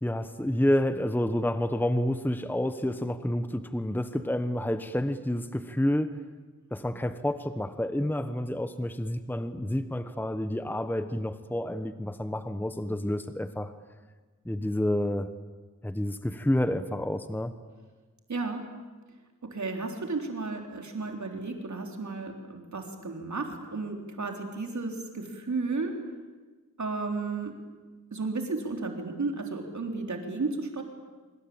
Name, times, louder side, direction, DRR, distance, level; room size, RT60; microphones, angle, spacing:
voice 1, 0.0-6.2 6.7-13.7 14.4-15.3 15.8-17.5, left 1 dB, 5° left, 10 dB, 1.1 m, -29 dB
voice 2, 18.3-18.6 19.5-25.9 26.8-27.5 28.1-30.8, right 3 dB, 65° right, 3 dB, 3.8 m, -33 dB
25.5 x 25.0 x 8.8 m, 1.3 s
wide cardioid pair, 105°, 31 cm